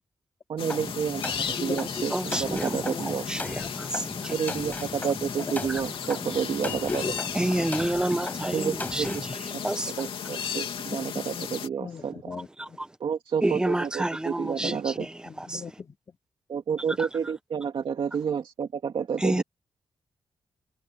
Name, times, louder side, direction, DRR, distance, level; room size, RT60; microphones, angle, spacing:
voice 1, 0.5-3.3 4.3-7.0 8.5-9.1 10.0-12.1 13.0-15.1 16.5-19.4, right 7 dB, 65° right, 2.2 m, -30 dB
sound 1, 0.6-11.7, left 7 dB, 80° left, 3.3 m, -35 dB
sound 2, 0.7-9.3, left 2 dB, 20° left, 6.2 m, -38 dB
voice 2, 1.5-2.1 2.5-2.6 2.9-3.7 5.4-5.5 6.6-7.2 7.6-7.7 11.1-11.5 11.8-12.8 14.6-16.2 19.3-19.4, left 5 dB, 35° left, 3.6 m, -38 dB
voice 3, 2.1-4.3 5.7-5.8 7.3-9.9 13.4-15.6 17.0-17.1 19.2-19.4, right 1 dB, 10° right, 1.2 m, -29 dB
wide cardioid pair, 145°, 9 cm